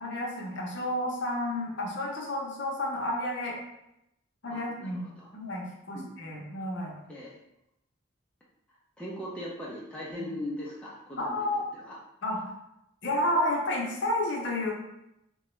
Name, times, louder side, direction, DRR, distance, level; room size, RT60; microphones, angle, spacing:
voice 1, 0.0-3.5 4.4-5.1 5.3-7.0 10.2-10.3 11.2-11.6 12.2-12.5 13.0-14.7, left 1 dB, 55° left, -2 dB, 0.6 m, -31 dB
voice 2, 4.5-5.3 5.9-6.1 7.1-7.3 9.0-11.5 11.7-12.0, left 1 dB, 5° left, -6 dB, 0.4 m, -39 dB
2.9 x 2.3 x 3.0 m, 0.85 s
head